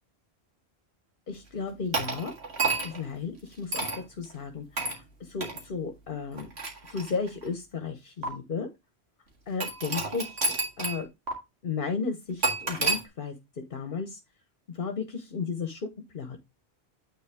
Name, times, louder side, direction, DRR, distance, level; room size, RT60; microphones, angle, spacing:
voice 1, 1.3-2.3 2.8-3.8 4.2-6.5 6.9-8.7 9.5-11.1 11.6-13.4 13.7-14.2 14.7-16.4, left 5 dB, 55° left, 7 dB, 1.2 m, -34 dB
sound 1, 1.9-3.1 3.7-4.0 4.8-5.0 5.4-5.6 6.3-7.5 8.2-8.3 9.6-11.0 11.3-11.4 12.4-13.0, right 3 dB, 85° right, 2.2 m, -30 dB
9.3 x 4.0 x 3.5 m, 0.21 s
omnidirectional pair, 1.1 m